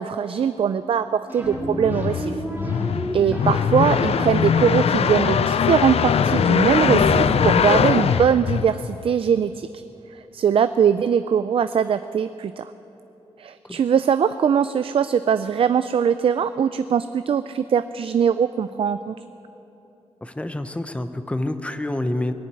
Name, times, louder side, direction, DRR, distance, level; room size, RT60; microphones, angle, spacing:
voice 1, 0.0-2.4 3.1-9.7 10.3-12.6 13.4-19.1, right 7 dB, 55° right, 12 dB, 0.4 m, -21 dB
sound 1, 1.3-8.8, right 1 dB, 15° right, 2.3 m, -32 dB
sound 2, 1.5-9.1, left 7 dB, 65° left, 0.5 m, -21 dB
voice 2, 20.2-22.3, left 1 dB, 10° left, 10 dB, 0.7 m, -27 dB
21.0 x 7.1 x 9.5 m, 3.0 s
wide cardioid pair, 150°, 11 cm